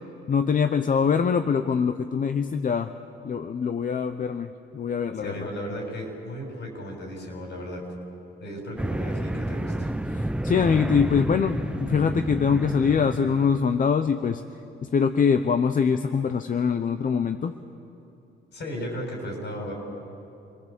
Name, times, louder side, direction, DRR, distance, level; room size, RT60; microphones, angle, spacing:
voice 1, 0.3-2.9 3.2-5.5 10.1-14.4 14.8-17.5, left 6 dB, 45° left, 9 dB, 0.8 m, -23 dB
voice 2, 5.2-7.8 8.4-9.9 18.5-19.7, equal, 65° left, 1 dB, 7.0 m, -35 dB
sound 1, 8.8-13.8, right 1 dB, 5° right, 0.7 m, -30 dB
27.5 x 19.5 x 7.5 m, 2.8 s
cardioid pair, 90°, 20 cm